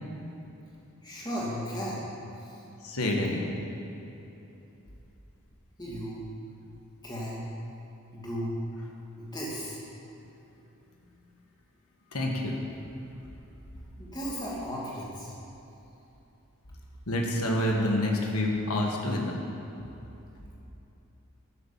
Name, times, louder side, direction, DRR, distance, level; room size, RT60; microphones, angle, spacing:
voice 1, 1.0-2.0 2.4-2.6 5.8-6.2 7.0-7.4 8.1-8.6 9.2-9.8 14.0-15.3, equal, 20° left, -6 dB, 2.4 m, -35 dB
voice 2, 2.8-3.5 9.2-9.3 12.1-12.6 17.1-19.4, left 1 dB, 85° left, 0 dB, 1.5 m, -28 dB
11.5 x 7.0 x 7.3 m, 3.0 s
head